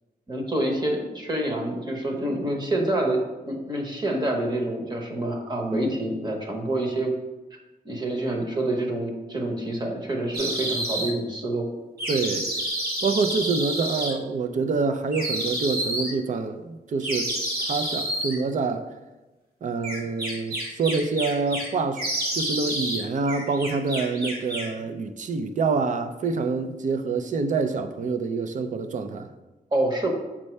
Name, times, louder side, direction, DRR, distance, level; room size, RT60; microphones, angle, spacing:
voice 1, 0.3-7.1 7.8-11.7 29.7-30.1, right 1 dB, 25° right, 1.1 m, -27 dB
sound 1, 10.3-11.1 12.0-14.1 15.1-16.1 17.0-18.3 19.8-21.7 22.0-23.0 23.3-24.7, right 1 dB, 85° right, 1.8 m, -29 dB
voice 2, 12.1-12.5 13.0-17.3 17.6-18.9 19.6-22.0 22.3-29.3, right 4 dB, 55° right, 0.5 m, -26 dB
7.3 x 5.4 x 3.3 m
wide cardioid pair, 155°, 16 cm